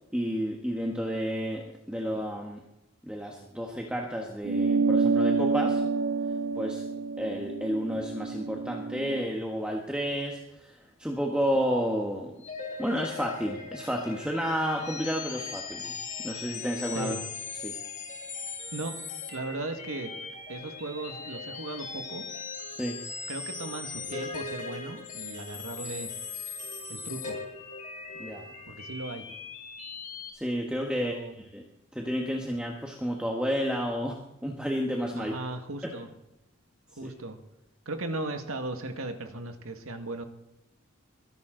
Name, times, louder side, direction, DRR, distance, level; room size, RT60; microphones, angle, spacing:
voice 1, 0.1-2.6 3.0-5.8 6.5-6.8 7.2-12.3 12.8-15.9 16.2-17.1 17.6-17.7 22.7-23.0 28.2-28.4 30.3-31.6 31.9-35.4 37.0-37.1, equal, 5° right, 0 dB, 1.3 m, -31 dB
sound 1, 4.4-9.2, right 4 dB, 60° right, 0.4 m, -28 dB
sound 2, 12.4-30.3, left 5 dB, 35° left, 2.6 m, -39 dB
voice 2, 19.3-20.1 20.5-22.2 23.3-26.1 26.9-27.4 28.7-29.3 30.9-31.4 35.1-36.1 37.0-37.4 37.9-40.2, right 2 dB, 85° right, 6 dB, 1.8 m, -37 dB
22.0 x 11.5 x 3.9 m, 0.86 s
head